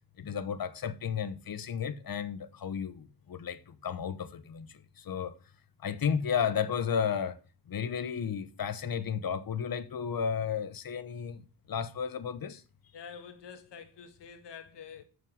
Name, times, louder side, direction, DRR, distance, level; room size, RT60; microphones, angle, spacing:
voice 1, 0.2-5.3 5.8-7.4 7.7-11.4 11.7-12.6, left 7 dB, 60° left, 1.2 m, -33 dB
voice 2, 12.9-15.0, left 6 dB, 85° left, 1.7 m, -47 dB
7.1 x 6.7 x 6.3 m
cardioid pair, 75°, 41 cm